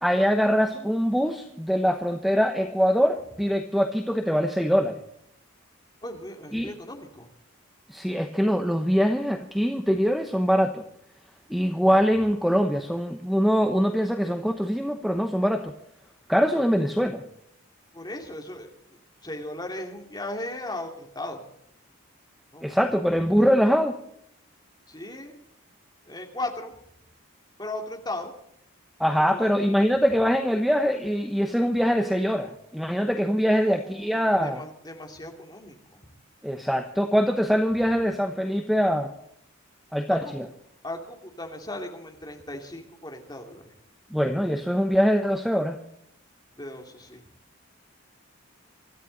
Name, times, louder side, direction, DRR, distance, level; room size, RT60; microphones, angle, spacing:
voice 1, 0.0-5.0 6.5-6.7 7.9-10.8 11.5-15.7 16.3-17.2 22.6-24.0 29.0-34.6 36.4-39.1 39.9-40.5 44.1-45.8, equal, ahead, 5 dB, 0.9 m, -23 dB
voice 2, 6.0-7.3 17.9-18.7 19.2-21.4 22.5-23.0 24.9-25.4 26.1-26.7 27.6-28.3 29.2-29.5 33.5-36.0 40.2-40.3 40.8-43.7 46.6-47.2, left 1 dB, 20° left, 2 dB, 2.7 m, -37 dB
25.0 x 13.5 x 4.1 m, 0.73 s
head